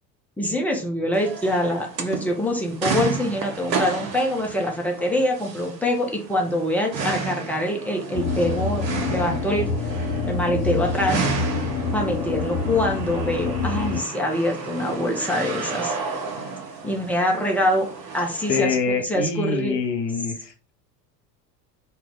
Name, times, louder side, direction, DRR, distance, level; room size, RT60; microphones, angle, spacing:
voice 1, 0.4-9.7 10.2-11.2 11.9-16.0 16.8-17.9 18.1-18.8 19.0-19.8, left 1 dB, 5° left, 0 dB, 0.5 m, -24 dB
sound 1, 1.1-18.6, right 5 dB, 80° right, 0.7 m, -32 dB
sound 2, 8.1-14.0, left 4 dB, 45° left, 0.7 m, -27 dB
voice 2, 18.5-20.7, left 4 dB, 75° left, 4 dB, 0.8 m, -25 dB
2.2 x 2.0 x 3.7 m, 0.37 s
figure-of-eight pair, 70°, 49 cm